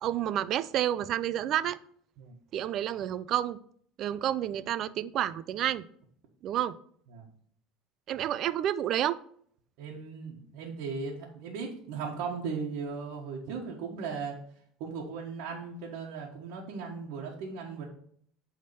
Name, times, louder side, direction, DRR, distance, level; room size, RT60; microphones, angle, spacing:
voice 1, 0.0-1.8 2.5-3.6 4.0-5.8 6.4-6.7 8.1-9.2, right 11 dB, 50° right, 17 dB, 0.4 m, -29 dB
voice 2, 9.8-14.4 14.8-17.9, right 5 dB, 75° right, -3 dB, 1.3 m, -37 dB
8.4 x 3.6 x 5.6 m, 0.62 s
supercardioid pair, 125°, 0 cm